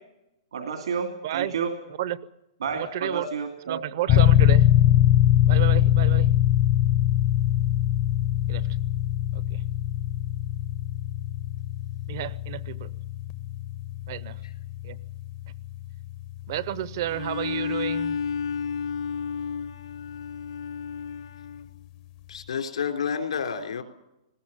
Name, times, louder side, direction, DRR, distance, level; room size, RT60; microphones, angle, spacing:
voice 1, 0.5-1.7 2.6-3.8 4.1-4.2, right 6 dB, 75° right, 4 dB, 2.6 m, -30 dB
voice 2, 1.2-1.5 2.0-2.2 2.7-3.3 3.7-4.7 5.5-6.4 8.5-8.7 9.3-9.6 12.1-12.9 14.1-14.4 14.8-15.0 16.5-18.2, right 13 dB, 35° right, 18 dB, 0.7 m, -31 dB
sound 1, 4.1-18.5, left 12 dB, 20° left, 0.7 m, -23 dB
Bowed string instrument, 17.1-21.8, left 6 dB, 60° left, 0.7 m, -32 dB
voice 3, 22.3-23.8, left 6 dB, 85° left, 5 dB, 3.4 m, -29 dB
20.0 x 17.0 x 8.8 m, 0.90 s
hypercardioid pair, 175°, 3 cm